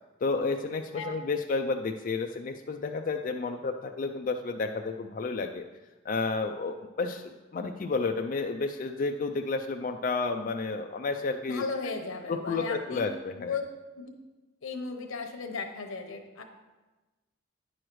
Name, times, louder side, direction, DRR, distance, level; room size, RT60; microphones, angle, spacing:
voice 1, 0.2-5.6 6.0-11.6 12.3-13.5, left 3 dB, 40° left, 4 dB, 0.3 m, -31 dB
voice 2, 11.4-13.0 13.4-13.6 13.9-14.1 14.6-16.4, left 4 dB, 80° left, 4 dB, 0.9 m, -35 dB
9.6 x 6.3 x 3.1 m, 1.2 s
head